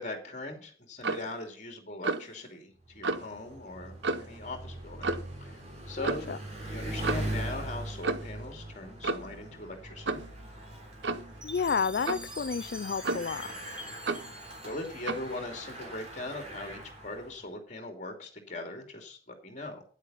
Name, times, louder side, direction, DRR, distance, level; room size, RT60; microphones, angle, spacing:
voice 1, 0.0-5.1 5.4-5.5 5.9-6.3 6.7-10.2 14.6-19.8, left 2 dB, 40° left, 4 dB, 2.9 m, -40 dB
Clock, 1.0-1.3 2.0-2.3 3.0-3.3 4.0-4.4 5.0-5.3 6.0-6.3 7.0-7.4 8.0-8.4 9.0-9.4 10.1-10.3 11.0-11.3 12.1-12.3 13.0-13.4 14.1-14.3 15.1-15.3, right 3 dB, 70° right, 0.8 m, -32 dB
Bicycle, 2.8-17.5, right 1 dB, 35° right, 3.4 m, -41 dB
voice 2, 6.0-6.4 11.4-13.5, left 5 dB, 55° left, 13 dB, 0.4 m, -31 dB
Chime, 11.4-15.7, left 1 dB, 5° right, 1.6 m, -46 dB
10.0 x 8.2 x 5.7 m, 0.42 s
head